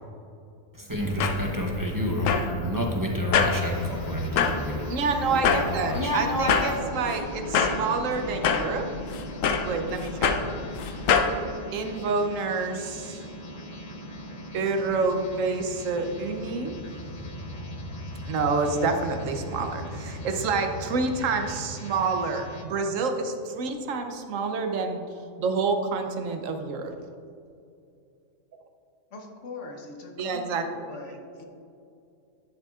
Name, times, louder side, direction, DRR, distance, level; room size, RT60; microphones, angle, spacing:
voice 1, 0.7-5.0 5.3-6.8, equal, 20° right, -1 dB, 0.6 m, -29 dB
sound 1, 0.9-11.4, left 6 dB, 85° left, 1.0 m, -27 dB
sound 2, 3.5-22.6, equal, 35° left, 0.8 m, -39 dB
voice 2, 4.9-8.9 9.7-10.4 11.7-13.2 14.5-16.8 18.3-25.0 25.4-26.9 30.2-30.9, right 4 dB, 80° right, 5 dB, 1.1 m, -28 dB
voice 3, 29.1-31.4, left 3 dB, 70° left, 2 dB, 1.3 m, -42 dB
10.5 x 6.8 x 2.4 m, 2.5 s
omnidirectional pair, 1.3 m